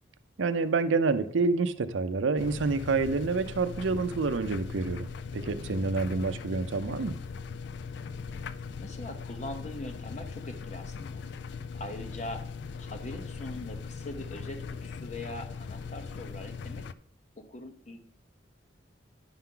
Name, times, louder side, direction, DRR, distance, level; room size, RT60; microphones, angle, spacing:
voice 1, 0.4-5.1 5.3-7.1, right 4 dB, 85° right, 11 dB, 0.5 m, -28 dB
sound 1, 2.4-16.9, left 5 dB, 60° left, 0.3 m, -40 dB
voice 2, 8.8-11.2 11.7-12.4 12.8-16.8 17.4-18.0, left 1 dB, 40° left, 7 dB, 0.8 m, -42 dB
10.5 x 5.8 x 3.8 m, 0.66 s
head